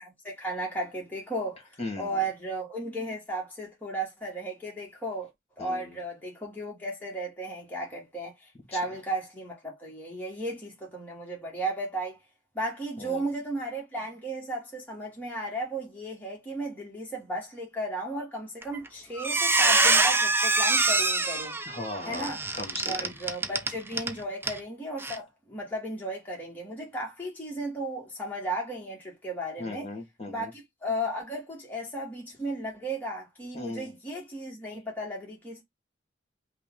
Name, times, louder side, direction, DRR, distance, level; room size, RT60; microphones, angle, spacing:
voice 1, 0.0-5.3 5.6-12.2 12.5-21.6 22.1-22.4 22.8-29.9 30.3-35.6, right 1 dB, 10° left, 1.5 m, -35 dB
voice 2, 1.8-2.2 5.6-6.0 8.7-8.8 13.0-13.2 21.7-23.1 29.6-30.5 33.5-33.9, left 2 dB, 35° left, 1.8 m, -38 dB
Squeak, 18.6-18.9 19.2-24.1 24.4-24.6 25.0-25.2, right 3 dB, 10° right, 0.5 m, -24 dB
5.6 x 2.3 x 3.7 m
head